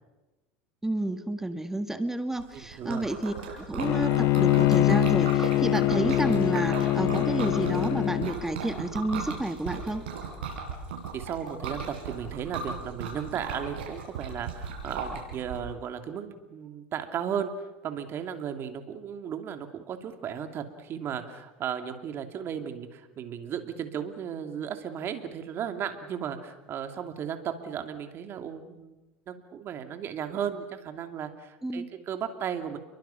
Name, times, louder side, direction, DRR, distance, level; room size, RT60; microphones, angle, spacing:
voice 1, 0.8-10.1 31.6-31.9, right 1 dB, 5° right, 8 dB, 1.7 m, -30 dB
Liquid, 2.4-15.6, right 5 dB, 80° right, 6.9 m, -37 dB
voice 2, 2.5-3.1 11.1-17.5 17.8-28.9 29.3-32.8, right 8 dB, 45° right, 7 dB, 2.8 m, -35 dB
Bowed string instrument, 3.8-8.4, left 16 dB, 55° left, 1.0 m, -24 dB
30.0 x 23.0 x 5.9 m, 1.1 s
supercardioid pair, 105°, 6 cm